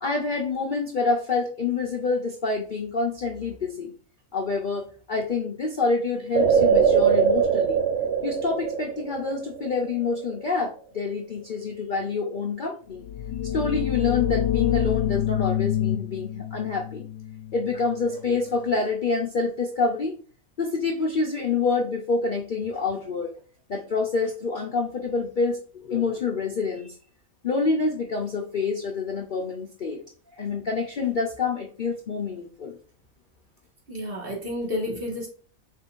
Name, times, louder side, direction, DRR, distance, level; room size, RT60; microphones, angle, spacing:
voice 1, 0.0-3.9 4.3-7.8 8.2-13.1 13.5-17.0 17.5-20.2 20.6-23.4 23.7-27.0 27.4-30.0 30.4-32.8, left 4 dB, 50° left, 1 dB, 0.6 m, -27 dB
sound 1, 6.3-10.0 10.4-10.5, right 7 dB, 65° right, 0.7 m, -22 dB
sound 2, 13.0-18.6, left 11 dB, 75° left, 1.0 m, -27 dB
voice 2, 33.9-35.3, left 1 dB, 40° right, -1 dB, 1.7 m, -30 dB
5.4 x 3.7 x 2.5 m, 0.41 s
omnidirectional pair, 1.5 m